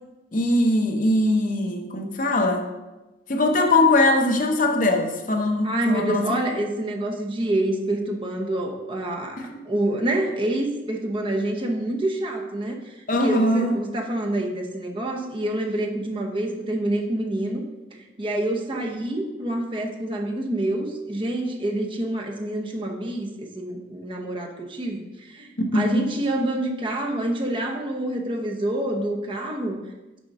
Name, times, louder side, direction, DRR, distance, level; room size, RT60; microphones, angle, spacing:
voice 1, 0.3-2.7 3.3-6.3 9.4-9.5 13.1-13.8 25.7-26.1, left 2 dB, 45° left, 4 dB, 0.7 m, -21 dB
voice 2, 5.6-17.6 17.9-29.8, right 1 dB, 30° right, 1 dB, 0.9 m, -27 dB
6.3 x 4.4 x 5.4 m, 1.1 s
head